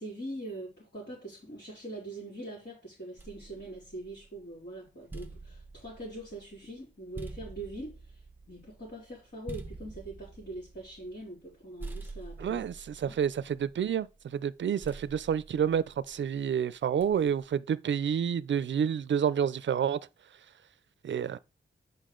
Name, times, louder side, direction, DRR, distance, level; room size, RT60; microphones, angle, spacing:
voice 1, 0.0-8.2 8.5-12.7 13.0-13.2, right 1 dB, 60° left, 4.2 m, -43 dB
sound 1, 3.2-4.4 4.9-11.5 11.8-14.1 14.8-16.3 17.0-17.5, right 3 dB, 10° right, 1.0 m, -46 dB
voice 2, 12.4-20.0 21.0-21.4, right 8 dB, 70° right, 0.4 m, -29 dB
8.5 x 5.4 x 3.8 m
wide cardioid pair, 130°, 20 cm